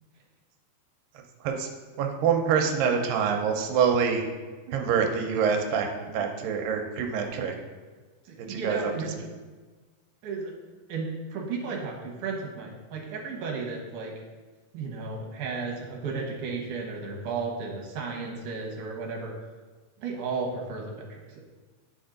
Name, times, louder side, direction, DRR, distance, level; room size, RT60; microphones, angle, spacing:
voice 1, 2.0-4.3 4.7-7.5 8.4-9.1, right 6 dB, 90° right, 3 dB, 2.4 m, -26 dB
voice 2, 8.3-9.1 10.2-10.5 10.9-14.1 14.7-19.3 20.0-21.2, right 4 dB, 70° right, -1 dB, 2.4 m, -34 dB
9.2 x 4.4 x 3.8 m, 1.3 s
omnidirectional pair, 4.1 m